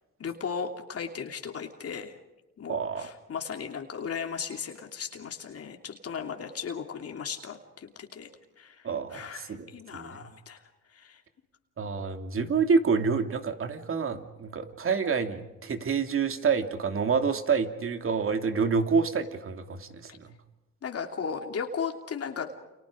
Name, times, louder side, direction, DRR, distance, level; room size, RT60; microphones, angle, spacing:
voice 1, 0.2-2.2 2.6-8.3 8.6-10.6 10.9-11.2 20.8-22.5, left 6 dB, 50° left, 3 dB, 3.0 m, -36 dB
voice 2, 2.7-3.1 8.8-10.3 11.8-20.3, right 5 dB, 45° right, 7 dB, 2.8 m, -28 dB
30.0 x 29.0 x 5.1 m, 1.1 s
cardioid pair, 90°, 30 cm